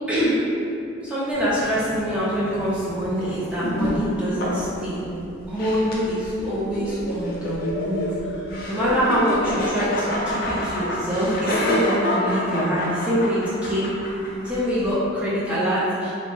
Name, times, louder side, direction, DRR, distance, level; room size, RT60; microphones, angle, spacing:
voice 1, 0.1-0.4 1.0-5.0 5.5-13.9 14.4-16.1, equal, 5° right, -10 dB, 0.5 m, -24 dB
sound 1, 1.3-14.9, left 1 dB, 45° left, 0.4 m, -28 dB
2.7 x 2.1 x 3.1 m, 2.6 s
head